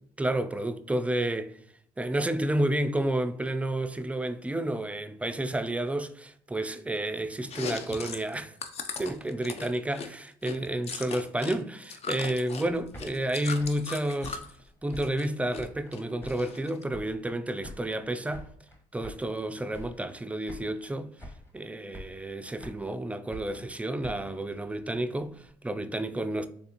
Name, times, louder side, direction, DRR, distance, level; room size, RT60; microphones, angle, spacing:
voice 1, 0.2-1.6 2.0-8.6 9.0-14.4 14.8-18.5 18.9-21.1 21.5-26.5, right 1 dB, 10° right, 0.3 m, -30 dB
Chewing mastication, 7.4-11.6 11.8-14.5 14.9-15.7 15.9-16.8, left 5 dB, 50° left, 0.5 m, -38 dB
sound 1, 12.7-15.9 16.2-17.3 17.6-19.4 19.7-20.2 20.5-20.9 21.2-21.6 21.9-23.0 23.3-25.5, equal, 15° left, 1.0 m, -47 dB
3.5 x 3.3 x 2.8 m
supercardioid pair, 65°, 14 cm